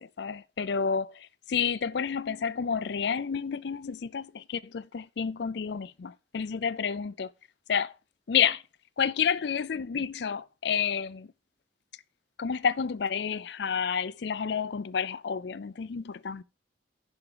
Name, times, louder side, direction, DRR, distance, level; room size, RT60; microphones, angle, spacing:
voice 1, 0.0-7.3 7.7-7.9 8.3-8.6 9.0-11.3 12.4-16.4, left 7 dB, 65° left, 0.4 m, -30 dB
10.5 x 5.9 x 4.9 m
head